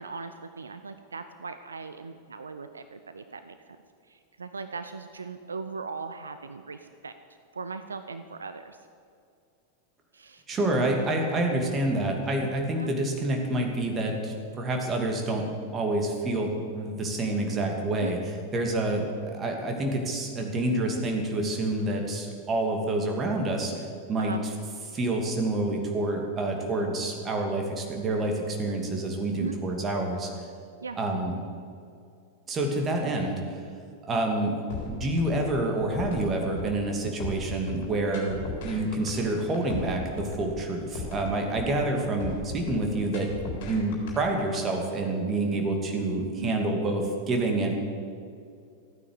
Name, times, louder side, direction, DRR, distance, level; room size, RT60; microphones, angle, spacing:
voice 1, 0.0-3.6 4.1-7.1 7.5-8.8 10.1-10.4 12.8-12.9 18.0-18.1 24.2-24.4 29.4-29.6 30.8-31.0 46.4-46.6, right 4 dB, 75° right, 9 dB, 0.6 m, -38 dB
voice 2, 10.5-15.5 15.7-18.2 18.5-24.5 24.9-30.3 31.0-31.3 32.5-33.6 34.1-34.5 34.9-38.4 38.6-43.3 43.7-47.7, right 2 dB, 25° right, 2 dB, 2.6 m, -28 dB
sound 1, 34.7-44.6, left 4 dB, 50° left, 3.8 m, -37 dB
14.5 x 9.4 x 8.2 m, 2.4 s
figure-of-eight pair, 90°, 0 cm